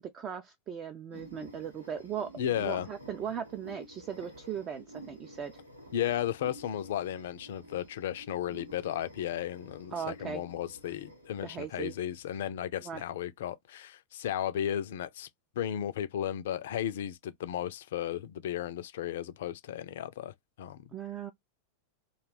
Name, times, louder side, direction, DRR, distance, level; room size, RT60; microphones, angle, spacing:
voice 1, 0.1-2.3 2.6-5.5 9.9-10.4 11.4-11.9 12.8-13.0 20.9-21.3, right 8 dB, 30° right, 0.4 m, -38 dB
sound 1, 1.1-12.4, right 1 dB, 85° right, 0.8 m, -51 dB
voice 2, 2.4-2.9 5.9-15.3 15.6-20.9, left 10 dB, 55° left, 0.4 m, -34 dB
2.5 x 2.2 x 3.3 m
figure-of-eight pair, 90°, 0 cm